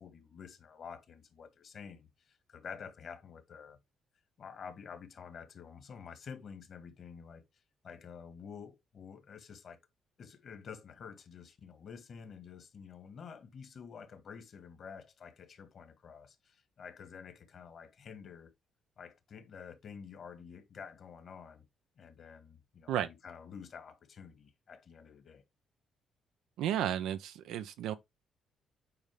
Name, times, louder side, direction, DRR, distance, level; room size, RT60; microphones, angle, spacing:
voice 1, 0.0-3.8 4.4-7.4 7.8-9.8 10.2-18.5 19.0-21.7 22.0-25.4, left 6 dB, 55° left, 1.7 m, -49 dB
voice 2, 26.6-27.9, right 10 dB, 90° right, 0.8 m, -33 dB
8.8 x 4.3 x 3.4 m
cardioid pair, 90°, 0 cm